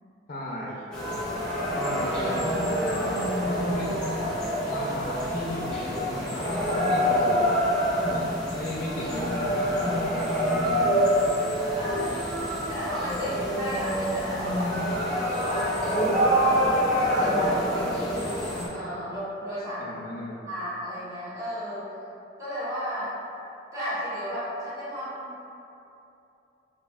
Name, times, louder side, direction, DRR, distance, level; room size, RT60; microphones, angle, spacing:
voice 1, 0.3-0.8 1.7-4.2 4.7-7.6 8.1-8.3 8.5-11.1 19.8-20.4, left 1 dB, 45° left, -4 dB, 0.4 m, -36 dB
sound 1, 0.9-18.7, equal, 5° left, 0.6 m, -26 dB
voice 2, 11.8-12.4 12.7-14.7 15.1-20.0 20.5-21.9 22.4-23.1 23.7-25.4, equal, 20° right, -12 dB, 0.9 m, -34 dB
4.2 x 2.6 x 2.3 m, 2.8 s
head